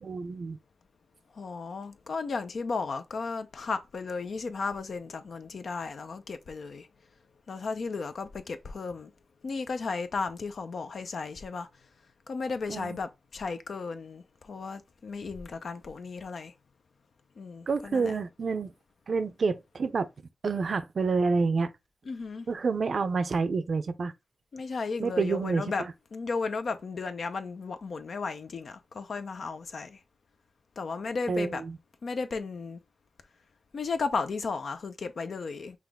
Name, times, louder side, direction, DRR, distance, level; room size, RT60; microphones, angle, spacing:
voice 1, 0.0-0.6 12.7-13.0 17.7-18.7 19.1-20.1 20.4-21.7 22.5-24.1 25.0-25.9 31.3-31.8, right 4 dB, 65° right, 0.5 m, -28 dB
voice 2, 1.4-6.9 7.5-9.1 9.4-11.7 12.3-16.5 17.4-18.1 22.1-22.5 24.5-25.8 26.1-30.0 30.8-31.6 32.0-32.8 33.7-35.8, left 4 dB, 75° left, 0.6 m, -34 dB
5.8 x 2.4 x 3.5 m
cardioid pair, 70°, 0 cm